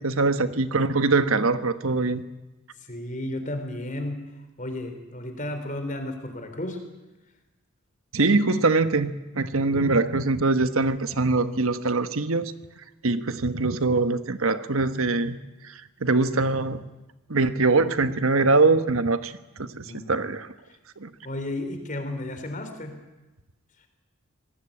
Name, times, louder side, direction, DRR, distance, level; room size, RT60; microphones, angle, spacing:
voice 1, 0.0-2.2 8.1-12.5 13.0-15.4 16.0-16.8 17.3-19.3 19.6-20.5 21.0-21.1, right 3 dB, 80° right, 11 dB, 1.3 m, -23 dB
voice 2, 2.8-4.3 4.6-6.8 9.6-10.0 19.8-20.2 21.2-23.0, left 1 dB, 35° left, 7 dB, 3.8 m, -33 dB
26.0 x 19.0 x 8.7 m, 1.1 s
head